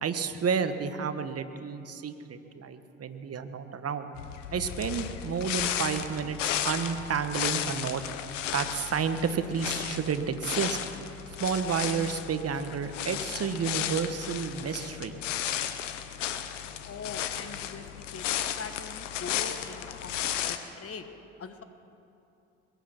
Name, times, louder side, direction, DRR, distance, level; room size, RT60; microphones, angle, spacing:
voice 1, 0.0-4.1 4.5-8.0 8.5-10.8 11.4-15.1, right 6 dB, 40° right, 9 dB, 1.3 m, -31 dB
sound 1, 4.2-20.6, left 10 dB, 90° left, 0.7 m, -34 dB
voice 2, 16.8-21.1 21.4-21.6, left 5 dB, 40° left, 9 dB, 1.2 m, -42 dB
22.0 x 10.5 x 5.9 m, 2.7 s
hypercardioid pair, 50°, 36 cm